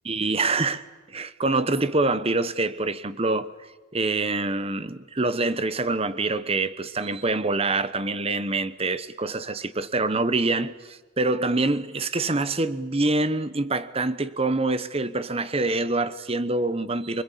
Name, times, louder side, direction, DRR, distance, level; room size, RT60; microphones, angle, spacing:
voice 1, 0.0-3.5 3.9-17.2, right 2 dB, 30° right, 1.0 m, -25 dB
25.5 x 24.0 x 8.5 m
head